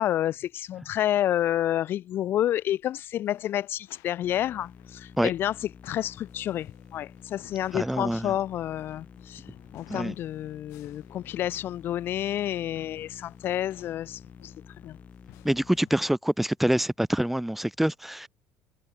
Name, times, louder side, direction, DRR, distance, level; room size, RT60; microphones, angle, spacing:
voice 1, 0.0-5.5 5.9-9.4 9.7-14.2 14.8-15.0, left 12 dB, 50° left, 0.5 m, -29 dB
sound 1, 3.3-16.1, left 22 dB, 80° left, 7.8 m, -56 dB
sound 2, 4.2-15.8, left 7 dB, 30° left, 2.7 m, -50 dB
voice 2, 7.7-8.3 9.9-10.1 15.4-18.3, right 1 dB, 5° right, 0.6 m, -26 dB
cardioid pair, 125°, 5 cm